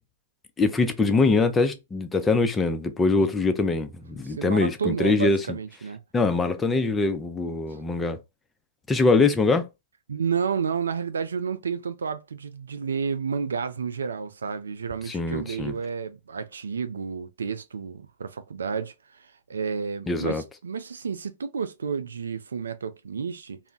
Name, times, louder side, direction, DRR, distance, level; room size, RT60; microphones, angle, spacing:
voice 1, 0.6-5.4 6.1-8.2 8.9-9.7 15.1-15.7 20.1-20.4, left 3 dB, 15° left, 0.4 m, -23 dB
voice 2, 4.2-6.0 10.1-18.9 19.2-23.6, right 6 dB, 75° right, 0.3 m, -31 dB
2.2 x 2.0 x 3.8 m
hypercardioid pair, 115°, 0 cm